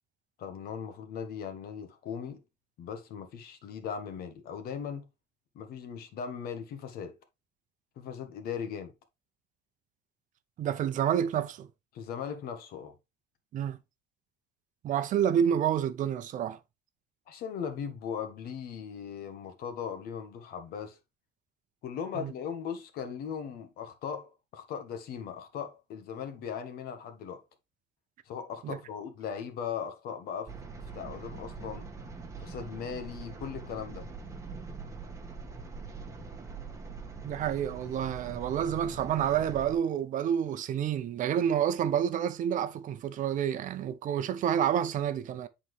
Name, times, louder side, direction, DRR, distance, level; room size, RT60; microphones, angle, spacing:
voice 1, 0.4-2.4 2.8-5.1 5.5-7.2 8.0-8.9 11.9-12.9 17.3-21.0 21.8-27.4 28.2-30.6 30.9-31.9 32.4-34.1, left 7 dB, 65° left, 1.3 m, -38 dB
voice 2, 10.6-11.7 13.5-13.8 14.8-16.6 22.1-22.3 28.6-28.8 37.2-45.5, right 9 dB, 50° right, 0.7 m, -29 dB
sound 1, 30.5-39.8, right 4 dB, 20° right, 1.2 m, -43 dB
7.6 x 4.3 x 3.1 m
cardioid pair, 140°, 17 cm